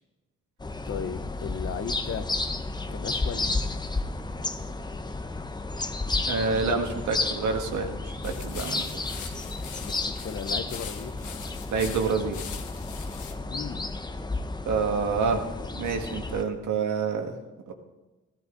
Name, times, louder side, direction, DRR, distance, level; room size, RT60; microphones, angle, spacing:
sound 1, 0.6-16.4, left 3 dB, 15° left, 0.8 m, -32 dB
voice 1, 0.8-2.3 2.9-3.6 9.8-11.1 13.4-13.9, left 7 dB, 45° left, 9 dB, 1.1 m, -36 dB
voice 2, 6.3-7.9 8.2-8.8 9.2-9.3 11.7-12.4 14.7-15.5 15.7-17.3 17.7-17.8, right 5 dB, 75° right, 3 dB, 1.9 m, -27 dB
sound 2, 8.2-13.4, left 8 dB, 80° left, 1.4 m, -42 dB
15.0 x 14.0 x 3.9 m, 1.1 s
cardioid pair, 90°, 30 cm